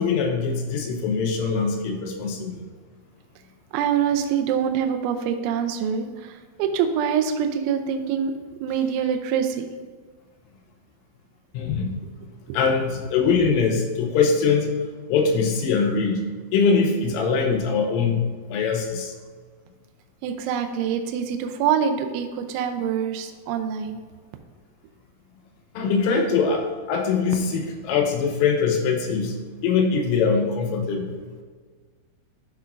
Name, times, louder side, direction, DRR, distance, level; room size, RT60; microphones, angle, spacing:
voice 1, 0.0-2.6 11.5-12.0 12.5-14.8 15.1-19.1 25.8-29.4 29.6-31.2, left 5 dB, 85° left, 3 dB, 3.5 m, -22 dB
voice 2, 3.7-6.1 6.6-8.3 8.6-9.7 12.5-12.6 20.2-24.0, right 8 dB, 80° right, 6 dB, 2.8 m, -25 dB
13.5 x 6.0 x 2.6 m, 1.5 s
omnidirectional pair, 5.9 m